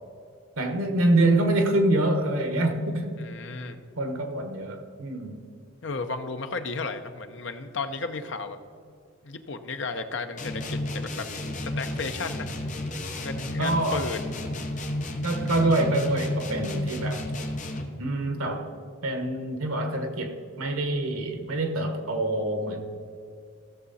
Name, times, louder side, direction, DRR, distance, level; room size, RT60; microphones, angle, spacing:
voice 1, 0.6-3.2 4.0-5.4 13.6-14.1 15.2-17.3 18.0-18.7 19.0-22.8, right 2 dB, 85° right, 5 dB, 1.4 m, -25 dB
voice 2, 3.2-3.8 5.8-8.6 9.2-11.3 11.6-12.5 13.2-14.2, left 4 dB, 60° left, 7 dB, 0.8 m, -33 dB
sound 1, 10.4-18.0, left 1 dB, 35° left, 1.0 m, -32 dB
15.5 x 6.8 x 4.1 m, 2.3 s
head